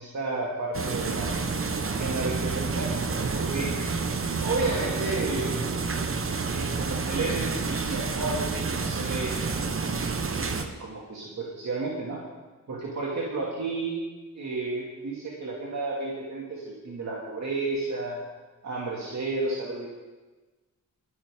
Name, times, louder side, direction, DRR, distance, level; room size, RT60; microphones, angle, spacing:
voice 1, 0.0-1.3 1.8-2.9 3.3-3.7 4.4-5.6 6.5-9.3 10.3-12.2 12.7-14.0 14.4-18.2 18.6-19.9, right 3 dB, 60° right, -4 dB, 2.3 m, -32 dB
sound 1, 0.7-10.7, right 4 dB, 40° right, 1.2 m, -29 dB
27.0 x 9.1 x 3.7 m, 1.2 s
cardioid pair, 95°, 32 cm